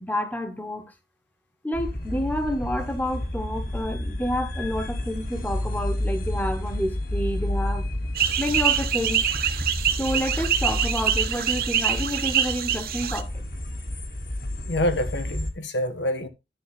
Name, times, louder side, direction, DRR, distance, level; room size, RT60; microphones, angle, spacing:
voice 1, 0.0-0.9 1.6-7.9 8.4-9.2 10.0-13.3, equal, 10° left, 1.1 m, -29 dB
sound 1, 1.7-15.5, left 1 dB, 50° left, 2.0 m, -31 dB
sound 2, 8.1-13.2, right 9 dB, 55° right, 1.0 m, -25 dB
voice 2, 14.7-16.3, left 1 dB, 85° left, 1.6 m, -26 dB
11.0 x 4.2 x 5.9 m
head